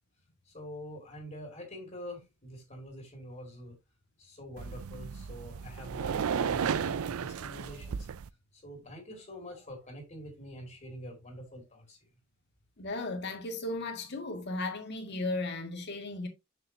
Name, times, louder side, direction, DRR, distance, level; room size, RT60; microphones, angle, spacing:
voice 1, 0.5-3.8 4.2-8.1 8.5-12.0, equal, 35° left, 2.2 m, -45 dB
sound 1, 4.6-8.3, right 7 dB, 75° right, 0.4 m, -34 dB
voice 2, 12.8-16.3, left 2 dB, 50° left, 1.8 m, -35 dB
6.8 x 6.4 x 2.8 m
head